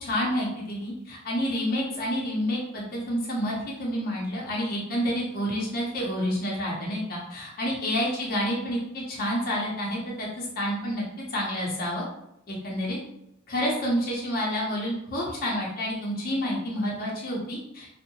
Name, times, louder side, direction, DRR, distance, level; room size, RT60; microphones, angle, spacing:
voice 1, 0.0-11.0 11.3-12.1 12.5-13.0 13.5-17.9, equal, 45° left, -4 dB, 0.6 m, -29 dB
2.6 x 2.0 x 2.7 m, 0.79 s
head